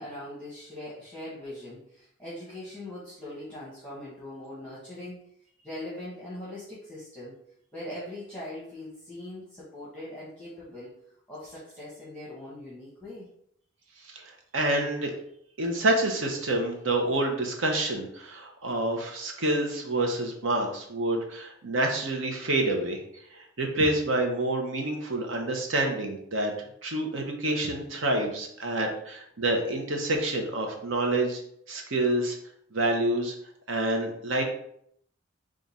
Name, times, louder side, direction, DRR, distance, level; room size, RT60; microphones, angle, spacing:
voice 1, 0.0-5.2 5.6-7.3 7.7-10.9 11.3-13.3, left 1 dB, 5° left, -8 dB, 1.0 m, -41 dB
voice 2, 14.1-15.1 15.6-23.0 23.3-26.5 26.8-31.4 31.7-32.4 32.7-33.3 33.7-34.4, right 1 dB, 70° right, 3 dB, 0.9 m, -27 dB
3.7 x 2.5 x 4.1 m, 0.69 s
head